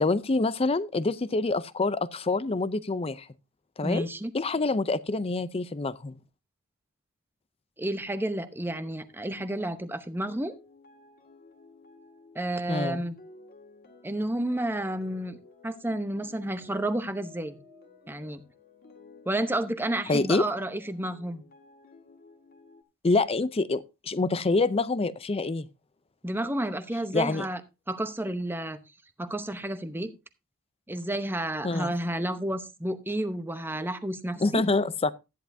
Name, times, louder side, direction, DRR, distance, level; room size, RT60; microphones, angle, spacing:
voice 1, 0.0-3.3 3.8-4.1 4.3-6.2 12.7-13.0 20.1-20.4 23.0-25.7 27.1-27.5 31.6-31.9 34.4-35.1, left 3 dB, 25° left, 0.5 m, -26 dB
voice 2, 3.8-4.3 7.8-10.6 12.3-13.1 14.0-15.4 15.6-17.6 18.1-18.4 19.3-21.4 26.2-27.6 27.9-28.8 29.2-30.1 30.9-34.6, right 1 dB, 10° right, 0.8 m, -31 dB
sound 1, 8.7-22.8, left 3 dB, 45° left, 1.9 m, -54 dB
13.5 x 10.5 x 2.7 m
head